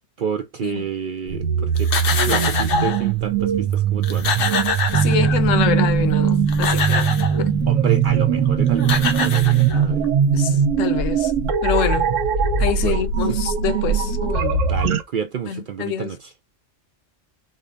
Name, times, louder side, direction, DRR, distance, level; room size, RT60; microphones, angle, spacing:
voice 1, 0.2-1.9 2.2-4.3 7.7-10.1 12.8-13.1 14.6-16.3, right 7 dB, 60° right, 0.5 m, -29 dB
sound 1, 1.3-15.0, right 8 dB, 90° right, 1.0 m, -21 dB
sound 2, 1.8-3.1 3.7-3.8 4.0-5.6 6.3-7.4 8.5-8.6 8.8-10.0, left 5 dB, 55° left, 0.8 m, -24 dB
voice 2, 4.9-7.1 7.4-7.6 10.3-11.3 11.6-12.1 12.6-14.7 15.5-16.2, left 9 dB, 85° left, 1.0 m, -26 dB
sound 3, 4.9-10.1, right 4 dB, 30° right, 0.9 m, -22 dB
5.1 x 2.1 x 2.5 m
omnidirectional pair, 1.3 m